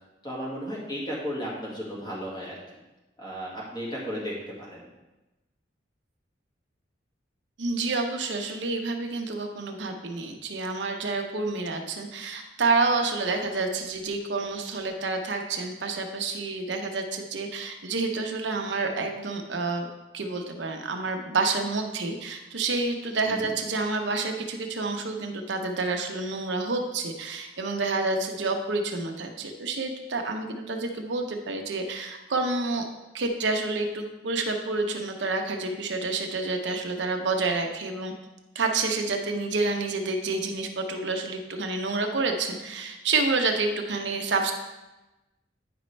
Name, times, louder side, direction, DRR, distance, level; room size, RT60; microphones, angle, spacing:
voice 1, 0.2-2.6 3.2-4.8 23.2-23.5, equal, 25° left, -5 dB, 1.8 m, -34 dB
voice 2, 7.6-19.9 20.1-32.8 33.1-38.1 38.5-44.5, right 3 dB, 75° right, 4 dB, 0.8 m, -28 dB
9.3 x 5.2 x 3.3 m, 1.0 s
head